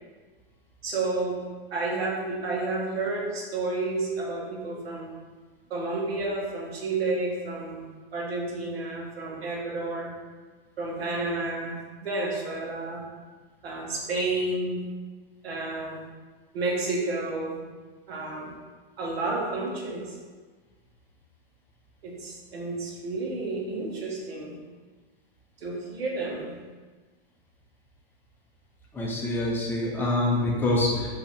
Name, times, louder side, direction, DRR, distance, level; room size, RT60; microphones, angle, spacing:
voice 1, 0.8-1.4 1.7-5.1 5.7-7.8 8.1-10.1 10.8-11.7 12.0-13.0 13.6-14.8 15.4-16.0 16.5-17.6 18.1-18.5 19.0-20.2 22.0-24.5 25.6-26.6, right 2 dB, 90° right, -2 dB, 1.3 m, -30 dB
voice 2, 28.9-31.2, left 2 dB, 5° left, -3 dB, 0.5 m, -26 dB
4.7 x 2.8 x 3.5 m, 1.4 s
hypercardioid pair, 150°, 30 cm